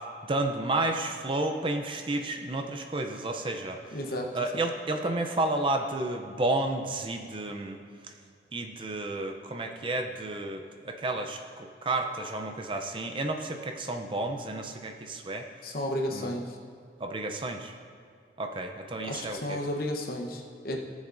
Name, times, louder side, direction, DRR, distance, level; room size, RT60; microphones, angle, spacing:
voice 1, 0.3-3.8 4.3-7.8 8.5-15.4 16.1-16.3 17.0-17.7 18.4-19.6, right 2 dB, 30° right, 4 dB, 0.6 m, -31 dB
voice 2, 3.9-4.3 15.6-16.6 19.0-20.8, left 1 dB, 55° left, 1 dB, 1.0 m, -33 dB
17.5 x 7.3 x 2.6 m, 2.3 s
head